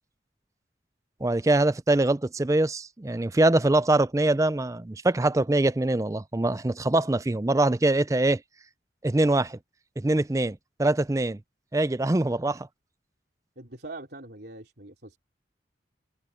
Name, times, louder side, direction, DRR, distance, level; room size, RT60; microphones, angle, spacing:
voice 1, 1.2-8.4 9.0-9.6 10.0-11.4 11.7-12.7, right 2 dB, 15° right, 0.4 m, -23 dB
voice 2, 13.6-15.2, right 2 dB, 60° right, 3.2 m, -42 dB
head